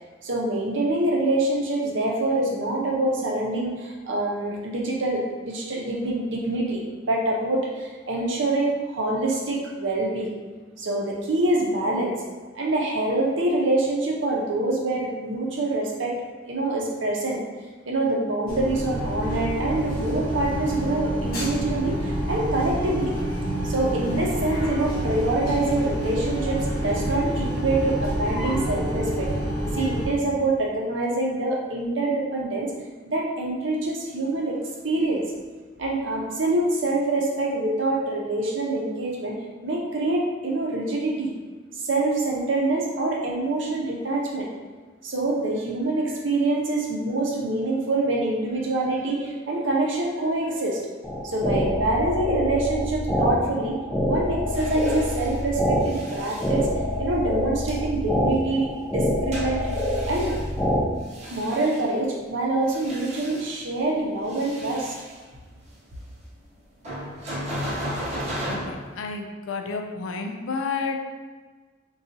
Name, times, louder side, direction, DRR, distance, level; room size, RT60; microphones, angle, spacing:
voice 1, 0.2-6.8 7.1-10.3 10.8-12.2 12.5-16.2 16.5-17.4 17.9-23.1 23.6-29.3 29.7-32.7 33.1-34.6 34.8-35.2 35.8-39.4 39.6-41.3 41.8-44.5 45.0-50.8 51.2-53.8 54.0-56.7 57.0-59.6 60.1-60.3 61.3-65.0, right 2 dB, 70° right, -1 dB, 0.7 m, -25 dB
sound 1, 18.5-30.1, right 1 dB, 50° left, 0.8 m, -28 dB
sound 2, 51.0-60.8, left 1 dB, 5° left, 0.4 m, -26 dB
sound 3, 54.5-57.1 57.7-57.8 59.3-61.9 62.5-63.8 64.2-65.2 66.8-69.0, equal, 35° right, 0.7 m, -35 dB
voice 2, 68.5-71.0, left 4 dB, 80° left, 4 dB, 0.4 m, -31 dB
3.9 x 2.3 x 2.6 m, 1.4 s
head